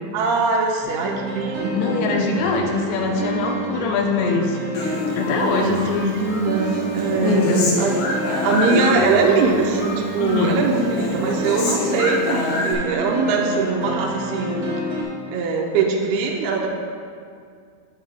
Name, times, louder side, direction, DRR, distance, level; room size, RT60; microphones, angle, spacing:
voice 1, 0.1-2.3 5.4-7.4 7.8-8.0 8.4-14.6 15.3-16.7, right 4 dB, 80° right, 0 dB, 2.5 m, -22 dB
sound 1, 0.8-15.0, right 2 dB, 60° right, 1.8 m, -29 dB
voice 2, 1.7-4.6 5.1-6.2 7.2-7.7 10.2-10.6, left 4 dB, 90° left, 2 dB, 2.9 m, -22 dB
Human voice, 4.7-5.9 6.3-9.5 9.8-10.5 10.7-12.7, left 2 dB, 70° left, 2.1 m, -26 dB
9.0 x 6.7 x 3.5 m, 2.2 s
omnidirectional pair, 4.9 m